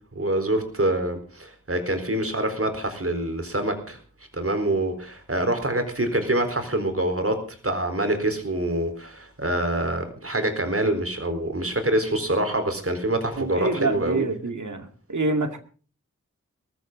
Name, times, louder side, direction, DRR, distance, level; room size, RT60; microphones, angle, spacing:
voice 1, 0.1-4.0 4.3-7.4 7.6-14.2, right 1 dB, 50° right, 8 dB, 4.2 m, -25 dB
voice 2, 13.4-15.6, right 3 dB, 75° right, 7 dB, 2.2 m, -27 dB
20.0 x 14.0 x 3.9 m, 0.39 s
wide cardioid pair, 50°, 30 cm